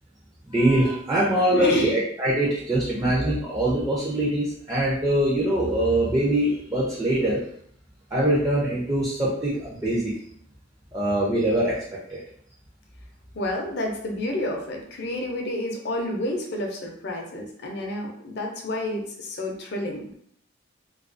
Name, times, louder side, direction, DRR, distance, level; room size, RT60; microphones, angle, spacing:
voice 1, 0.5-7.4 8.1-10.1 10.9-12.2, right 1 dB, 15° right, -6 dB, 0.4 m, -23 dB
voice 2, 1.5-2.0 13.3-20.0, left 1 dB, 60° left, 1 dB, 0.5 m, -30 dB
2.3 x 2.2 x 2.5 m, 0.65 s
head